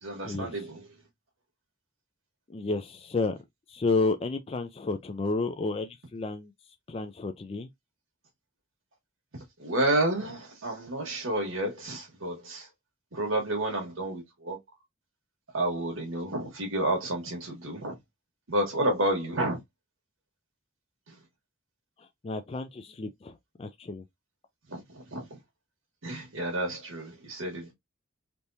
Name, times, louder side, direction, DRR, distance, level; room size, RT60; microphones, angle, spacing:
voice 1, 0.0-1.1 9.3-12.7 13.1-14.6 15.5-18.0 18.5-19.6 21.1-21.2 24.7-25.4 26.0-27.7, right 1 dB, 90° right, 1.5 m, -30 dB
voice 2, 2.5-3.4 3.7-6.5 6.9-7.7 22.2-24.0, left 3 dB, 30° left, 0.4 m, -31 dB
3.4 x 2.8 x 2.6 m
head